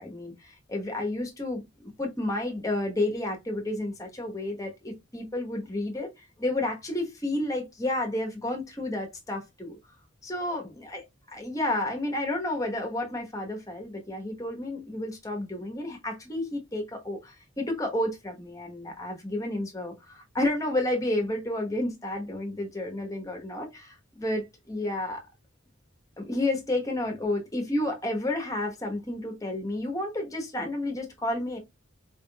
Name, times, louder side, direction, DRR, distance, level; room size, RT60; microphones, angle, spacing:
voice 1, 0.0-6.1 6.4-9.8 10.2-11.0 11.3-25.2 26.2-31.6, left 1 dB, 15° left, 1.1 m, -31 dB
4.3 x 3.6 x 2.3 m
head